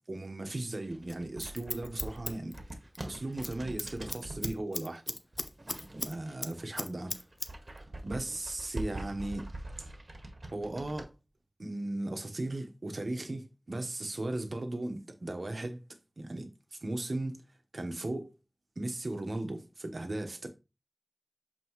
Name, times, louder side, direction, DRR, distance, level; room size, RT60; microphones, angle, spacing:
voice 1, 0.1-2.6 3.0-5.1 5.9-7.2 8.0-9.5 9.8-9.9 10.5-11.1 11.6-15.8 16.2-16.5 16.8-17.4 17.7-18.3 18.8-20.5, right 2 dB, 85° right, 1.2 m, -37 dB
sound 1, 0.8-4.6 5.3-6.6 7.0-11.1, right 1 dB, 65° right, 1.6 m, -43 dB
Scissors, 1.1-3.1 3.3-3.5 3.8-6.1 6.4-7.5 7.8-7.9, left 2 dB, 65° left, 0.7 m, -37 dB
7.7 x 4.4 x 3.1 m
wide cardioid pair, 40°, 0 cm